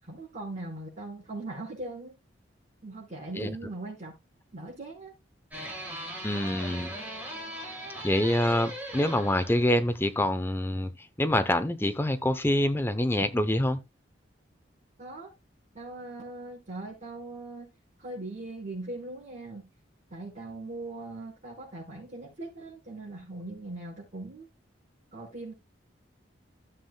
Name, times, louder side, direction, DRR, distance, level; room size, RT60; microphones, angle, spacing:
voice 1, 0.0-2.1 2.8-4.1 4.5-5.1 15.0-15.3 15.7-17.7 18.0-19.7 20.1-24.5 25.1-25.5, right 2 dB, 40° right, 4.9 m, -40 dB
sound 1, 5.5-10.0, right 1 dB, 10° right, 4.3 m, -39 dB
voice 2, 6.2-6.9 8.0-10.9 11.2-13.8, left 1 dB, 10° left, 0.7 m, -26 dB
15.0 x 7.4 x 2.2 m
head